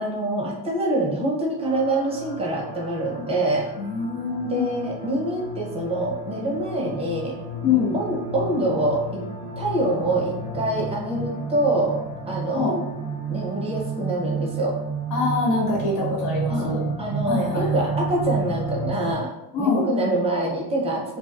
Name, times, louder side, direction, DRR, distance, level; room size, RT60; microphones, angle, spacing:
voice 1, 0.0-3.7 4.5-7.3 7.9-9.2 9.6-12.0 12.2-12.7 13.3-14.7 16.5-16.7 17.0-19.3 19.6-21.2, right 1 dB, 15° right, -2 dB, 0.6 m, -25 dB
sound 1, 1.6-19.1, right 3 dB, 15° left, 1.2 m, -32 dB
voice 2, 3.8-4.8 7.6-8.0 12.5-12.8 15.1-16.8 17.3-17.9 19.5-19.9, left 4 dB, 65° left, -4 dB, 0.9 m, -24 dB
2.4 x 2.2 x 2.4 m, 0.93 s
cardioid pair, 105°, 41 cm